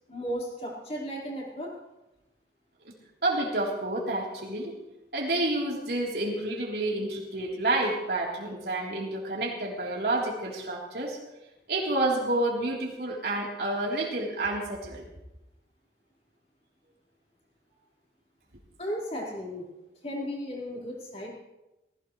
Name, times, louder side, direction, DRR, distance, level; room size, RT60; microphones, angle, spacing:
voice 1, 0.1-1.7 18.8-19.6 20.0-21.3, equal, 35° left, -4 dB, 4.8 m, -35 dB
voice 2, 3.2-4.8 5.1-11.2 11.7-15.0, right 2 dB, 65° right, -2 dB, 3.8 m, -29 dB
19.5 x 16.5 x 3.3 m, 0.97 s
head